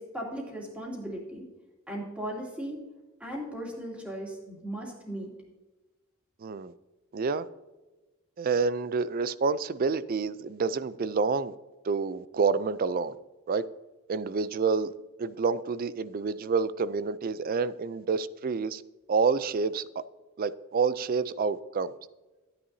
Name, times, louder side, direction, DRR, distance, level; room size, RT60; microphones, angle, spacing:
voice 1, 0.0-1.5 1.9-2.8 3.2-5.3, right 1 dB, 5° right, 2.6 m, -37 dB
voice 2, 6.4-6.7 7.1-7.5 8.4-11.5 11.9-13.2 13.5-13.6 14.1-14.9 15.2-18.8 19.1-19.9 20.4-21.9, right 5 dB, 40° right, 0.4 m, -28 dB
13.5 x 9.9 x 2.7 m
head